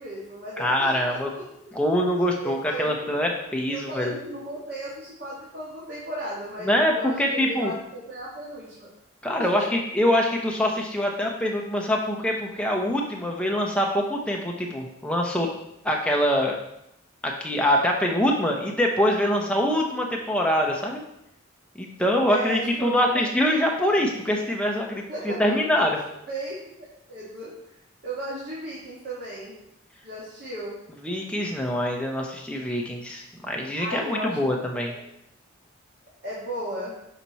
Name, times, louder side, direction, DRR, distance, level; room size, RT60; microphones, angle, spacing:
voice 1, 0.0-1.4 2.4-3.2 3.7-8.9 9.4-9.7 22.2-23.2 25.1-25.4 26.3-27.5 28.0-29.6 30.0-30.7 33.7-34.5 34.8-35.0 36.2-36.9, right 1 dB, 50° right, -7 dB, 1.4 m, -35 dB
voice 2, 0.6-1.3 1.7-4.1 6.6-7.7 9.2-15.5 15.8-16.6 17.2-21.0 21.8-25.9 31.0-34.9, equal, 5° left, 0 dB, 0.7 m, -24 dB
5.9 x 4.4 x 4.1 m, 0.80 s
head